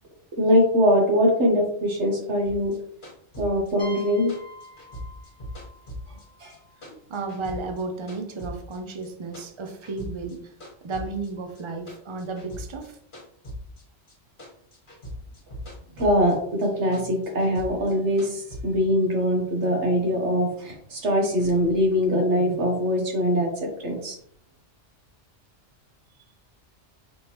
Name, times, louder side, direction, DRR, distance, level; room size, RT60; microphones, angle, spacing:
voice 1, 0.3-2.7 3.4-4.3 6.4-6.5 16.0-24.2, equal, 80° right, 1 dB, 1.5 m, -22 dB
sound 1, 2.5-6.6 6.8-8.8 9.0-10.4 10.6-14.1 14.4-16.4 16.6-18.6, equal, 45° left, 1.6 m, -40 dB
sound 2, 3.8-7.4, left 1 dB, 50° right, 2.4 m, -46 dB
voice 2, 7.1-13.0, right 3 dB, 35° right, 5 dB, 0.5 m, -33 dB
5.1 x 3.4 x 3.0 m, 0.65 s
omnidirectional pair, 1.2 m